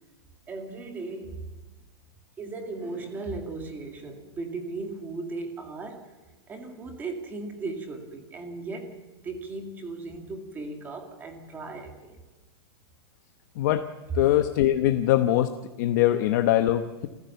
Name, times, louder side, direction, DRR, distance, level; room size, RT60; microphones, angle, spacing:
voice 1, 0.5-1.4 2.4-6.0 6.5-8.9 9.2-12.2, right 3 dB, 15° right, 4 dB, 2.2 m, -37 dB
voice 2, 13.6-13.9 14.1-15.5 15.8-17.1, left 13 dB, 45° left, 8 dB, 1.0 m, -22 dB
27.5 x 15.0 x 6.9 m, 1.2 s
supercardioid pair, 170°, 13 cm